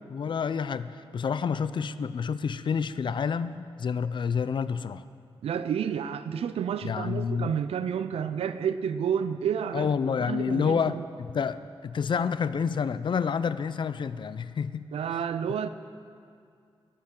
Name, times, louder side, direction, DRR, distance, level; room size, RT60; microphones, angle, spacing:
voice 1, 0.1-5.0 6.8-7.5 9.7-14.9, left 6 dB, 50° left, 15 dB, 0.4 m, -29 dB
voice 2, 5.4-9.9 10.2-11.0 14.9-15.7, right 8 dB, 85° right, 12 dB, 0.4 m, -30 dB
19.5 x 8.7 x 3.7 m, 2.3 s
cardioid pair, 90°, 10 cm